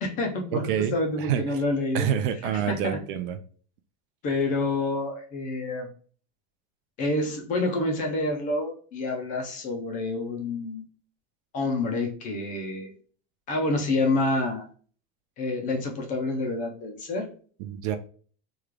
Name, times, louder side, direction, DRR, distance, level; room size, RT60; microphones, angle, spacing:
voice 1, 0.0-2.1 2.5-3.0 4.2-5.9 7.0-10.8 11.5-12.9 13.5-14.7 15.4-17.3, left 2 dB, 25° left, 3 dB, 0.4 m, -28 dB
voice 2, 0.5-1.4 1.9-3.4 17.6-18.0, right 9 dB, 50° right, 10 dB, 0.4 m, -27 dB
3.2 x 2.3 x 3.4 m, 0.43 s
supercardioid pair, 175°, 34 cm